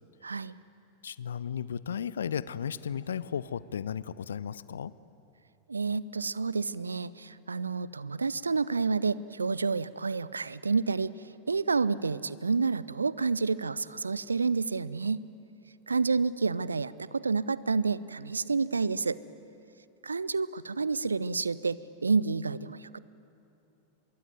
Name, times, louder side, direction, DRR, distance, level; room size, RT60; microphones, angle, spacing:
voice 1, 0.2-0.5 5.7-11.1 11.5-15.2 15.9-19.2 20.0-23.0, right 4 dB, 75° right, 19 dB, 0.6 m, -29 dB
voice 2, 1.0-4.9, left 8 dB, 65° left, 19 dB, 0.6 m, -34 dB
24.5 x 22.0 x 9.3 m, 2.7 s
figure-of-eight pair, 90°, 0 cm